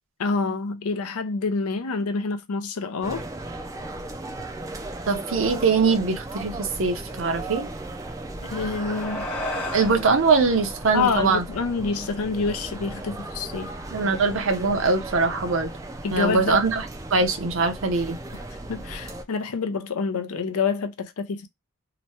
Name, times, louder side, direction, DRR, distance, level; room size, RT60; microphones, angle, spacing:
voice 1, 0.2-3.2 8.4-9.3 10.9-13.7 16.0-16.6 18.3-18.4 18.7-21.5, left 4 dB, 90° left, 0.6 m, -27 dB
sound 1, 3.0-19.2, right 2 dB, 15° right, 0.3 m, -36 dB
voice 2, 5.1-7.7 9.7-11.4 13.9-15.7 16.1-16.9 17.1-18.2, right 4 dB, 60° right, 0.7 m, -22 dB
sound 2, 8.2-12.9, left 1 dB, 10° left, 0.7 m, -36 dB
2.9 x 2.2 x 2.7 m
head